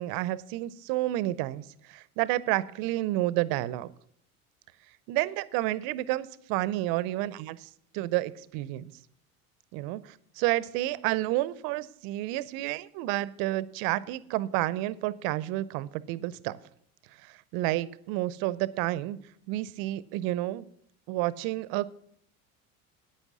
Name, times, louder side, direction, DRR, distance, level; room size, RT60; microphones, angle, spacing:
voice 1, 0.0-3.9 5.1-7.7 7.9-8.9 9.7-16.5 17.2-19.2 19.5-20.6 21.1-21.9, right 16 dB, 55° right, 18 dB, 0.7 m, -30 dB
9.8 x 9.0 x 6.2 m, 0.66 s
hypercardioid pair, 75°, 43 cm